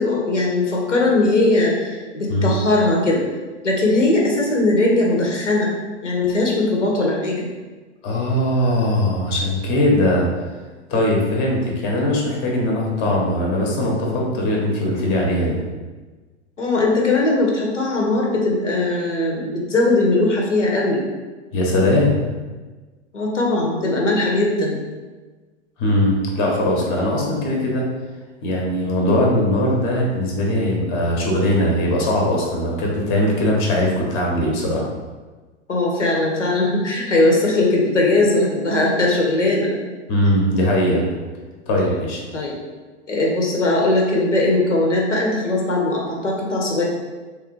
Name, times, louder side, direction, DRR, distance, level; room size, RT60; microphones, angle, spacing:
voice 1, 0.0-3.2 3.6-5.7 6.0-7.5 16.6-21.0 23.1-24.8 35.7-39.8 42.3-42.6 43.1-46.8, left 2 dB, 85° left, -2 dB, 0.7 m, -19 dB
voice 2, 8.0-10.3 10.9-15.6 21.5-22.2 25.8-27.8 28.4-34.9 40.1-41.1 41.7-42.2, left 1 dB, 30° left, -1 dB, 0.7 m, -20 dB
3.2 x 2.3 x 3.1 m, 1.3 s
figure-of-eight pair, 95°, 35 cm